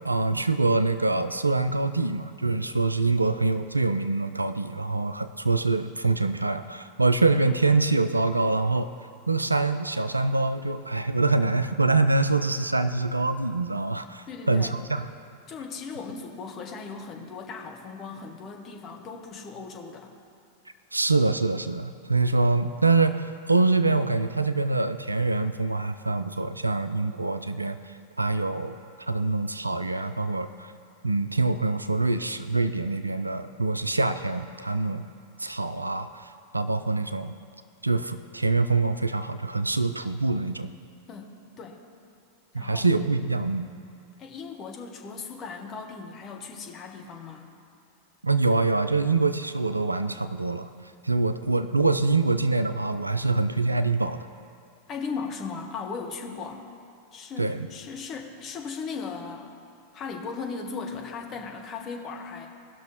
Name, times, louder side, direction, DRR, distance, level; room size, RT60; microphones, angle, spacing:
voice 1, 0.0-8.9 9.3-15.0 20.9-27.8 28.2-28.8 29.1-30.7 31.0-35.0 35.4-37.3 37.8-40.7 42.5-43.7 48.2-50.7 51.0-54.3 57.4-57.7, right 3 dB, 85° right, 11 dB, 0.4 m, -25 dB
voice 2, 14.3-14.8 15.5-20.1 41.1-41.8 42.5-42.9 44.2-47.5 54.9-56.6 57.1-59.5 59.9-62.5, left 5 dB, 30° left, 1 dB, 1.3 m, -37 dB
18.0 x 6.2 x 3.1 m, 2.5 s
figure-of-eight pair, 90°, 0 cm